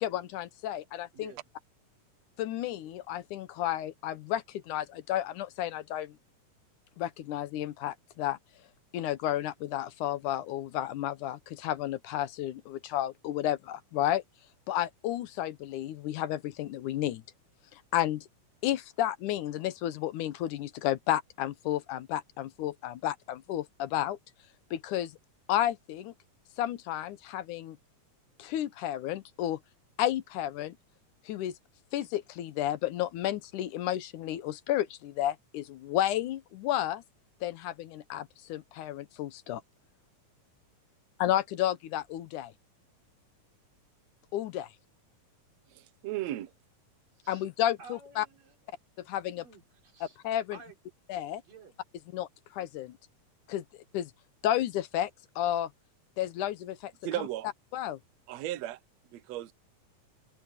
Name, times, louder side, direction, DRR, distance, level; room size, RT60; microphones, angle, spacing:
voice 1, 0.0-1.3 2.4-6.2 7.0-8.4 8.9-14.2 14.7-17.2 17.7-18.3 18.6-24.2 24.7-25.1 25.5-26.1 26.6-27.8 28.4-29.6 30.0-30.8 31.3-31.6 31.9-37.0 37.4-39.6 41.2-42.5 44.3-44.7 47.3-48.3 49.0-49.4 50.2-50.6 51.1-51.4 52.1-53.0 53.5-53.6 53.9-54.1 54.4-55.7 56.2-56.9 57.7-58.0, left 12 dB, 75° left, 2.3 m, -32 dB
voice 2, 45.7-46.5 57.0-57.5 58.3-58.8 59.1-59.5, right 14 dB, 65° right, 1.9 m, -35 dB
voice 3, 47.8-48.6 49.3-50.2 50.5-50.8 51.4-51.7, right 5 dB, 90° right, 6.1 m, -51 dB
omnidirectional pair, 3.8 m